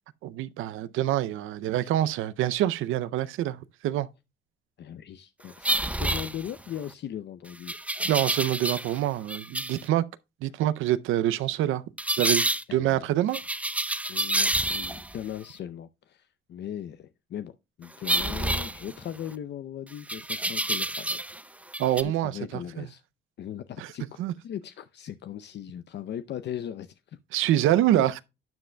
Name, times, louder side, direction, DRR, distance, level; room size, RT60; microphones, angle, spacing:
voice 1, 0.2-4.1 8.1-10.0 10.4-11.8 12.2-12.4 12.7-13.4 21.8-22.9 23.8-23.9 24.2-24.3 27.3-28.1, right 13 dB, 85° right, 0.5 m, -26 dB
voice 2, 4.8-7.8 12.7-13.2 14.1-21.2 22.0-23.0 23.4-27.2, left 10 dB, 60° left, 0.6 m, -39 dB
sound 1, 5.6-6.8 7.7-9.0 9.3-9.8 12.0-12.6 13.3-15.2 18.0-19.3 20.1-21.4 21.7-22.0, right 1 dB, 5° right, 0.6 m, -28 dB
12.0 x 7.6 x 2.2 m
cardioid pair, 90°, 20 cm